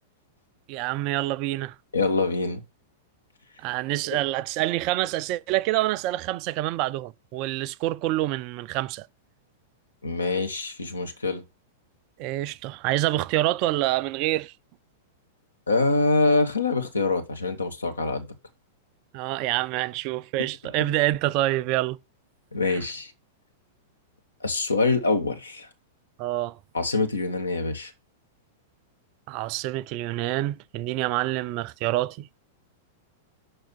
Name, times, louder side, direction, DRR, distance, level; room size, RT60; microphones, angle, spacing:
voice 1, 0.7-1.8 3.6-9.1 12.2-14.5 19.1-22.0 22.7-22.8 26.2-26.6 29.3-32.3, right 16 dB, 40° right, 0.4 m, -27 dB
voice 2, 1.9-2.6 4.1-4.2 10.0-11.4 15.7-18.3 22.5-23.1 24.4-25.7 26.7-27.9, left 3 dB, 75° left, 1.3 m, -25 dB
6.3 x 4.6 x 6.4 m
figure-of-eight pair, 95°, 0 cm